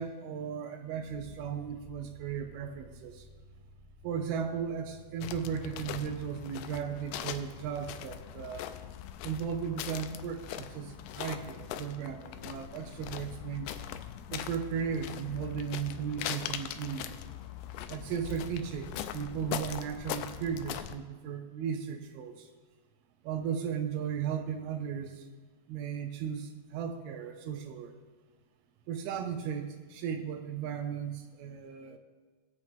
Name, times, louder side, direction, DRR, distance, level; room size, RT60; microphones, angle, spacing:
voice 1, 0.0-3.3 4.0-8.7 9.2-13.8 14.3-17.1 17.9-22.5 23.2-25.3 25.7-27.9 28.9-32.0, right 7 dB, 85° right, 5 dB, 2.1 m, -36 dB
sound 1, 0.8-9.9, left 1 dB, 5° left, 2.7 m, -57 dB
sound 2, 5.2-21.0, left 10 dB, 85° left, 2.4 m, -41 dB
19.0 x 8.1 x 3.5 m, 1.3 s
omnidirectional pair, 5.4 m